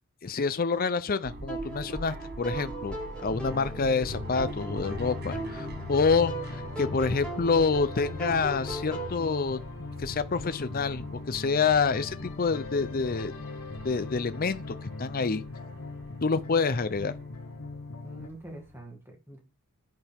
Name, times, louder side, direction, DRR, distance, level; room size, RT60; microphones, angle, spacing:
voice 1, 0.2-9.6 10.0-13.3 13.8-15.4 16.2-17.1, left 4 dB, 40° left, 0.6 m, -27 dB
sound 1, 1.2-18.8, left 1 dB, 45° right, 1.5 m, -43 dB
sound 2, 1.5-9.2, right 2 dB, 5° left, 5.1 m, -39 dB
sound 3, 3.3-18.3, left 3 dB, 70° left, 1.7 m, -41 dB
voice 2, 18.0-19.4, right 1 dB, 10° right, 2.5 m, -45 dB
10.5 x 9.6 x 3.6 m
head